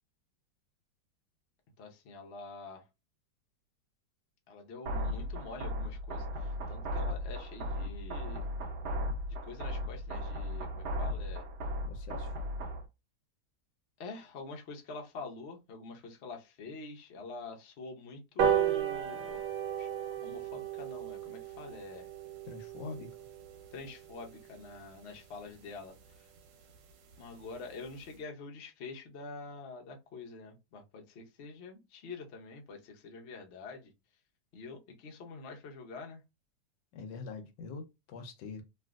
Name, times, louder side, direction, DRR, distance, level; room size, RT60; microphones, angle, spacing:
voice 1, 1.8-2.9 4.5-8.5 9.4-11.5 14.0-19.4 19.7-19.9 20.2-22.1 23.7-25.9 27.2-33.9 34.5-36.2, left 4 dB, 60° left, 0.7 m, -46 dB
sound 1, 4.9-12.9, left 1 dB, 70° right, 1.2 m, -36 dB
voice 2, 11.9-12.3 22.5-23.1 36.9-38.6, left 4 dB, 80° left, 1.3 m, -44 dB
sound 2, 18.4-25.1 25.6-25.7 26.0-26.1 26.4-26.5 26.7-26.8 27.1-27.4 27.8-27.9, right 9 dB, 85° right, 1.4 m, -35 dB
3.2 x 2.5 x 2.3 m
omnidirectional pair, 1.9 m